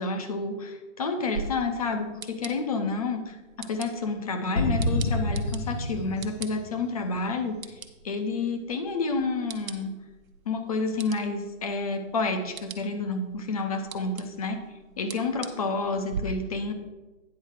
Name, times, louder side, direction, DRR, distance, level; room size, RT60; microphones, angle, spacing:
voice 1, 0.0-10.0 10.5-14.6 15.0-16.7, left 3 dB, 30° left, 7 dB, 0.7 m, -29 dB
sound 1, 1.3-16.2, right 6 dB, 80° right, 1.1 m, -44 dB
sound 2, 4.6-7.3, left 1 dB, 65° left, 1.3 m, -28 dB
9.4 x 4.4 x 6.4 m, 1.2 s
hypercardioid pair, 155°, 40 cm